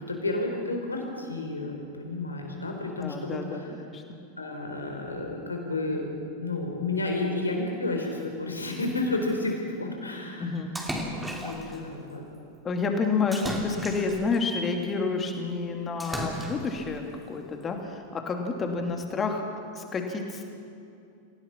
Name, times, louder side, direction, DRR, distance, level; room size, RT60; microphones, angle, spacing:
voice 1, 0.0-3.7 4.4-10.6 11.4-12.2 18.6-18.9, left 2 dB, 80° left, 2 dB, 4.1 m, -31 dB
voice 2, 3.0-4.2 10.4-10.7 11.3-11.8 12.6-20.4, left 4 dB, 20° left, 3 dB, 2.8 m, -30 dB
Splash splatter, 10.8-11.8 13.3-14.4 16.0-16.8, equal, 5° right, 3.0 m, -34 dB
28.0 x 16.5 x 6.0 m, 2.5 s
figure-of-eight pair, 90°, 0 cm